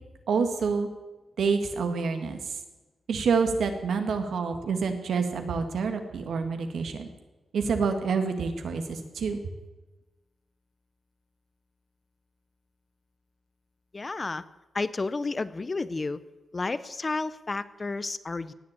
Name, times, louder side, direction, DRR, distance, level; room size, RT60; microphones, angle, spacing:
voice 1, 0.3-0.9 1.4-2.6 3.1-7.1 7.5-9.4, right 5 dB, 80° right, 6 dB, 1.8 m, -27 dB
voice 2, 13.9-14.4 14.7-16.2 16.5-18.5, left 3 dB, 30° left, 15 dB, 0.6 m, -31 dB
18.0 x 7.2 x 8.5 m, 1.1 s
wide cardioid pair, 110°, 0 cm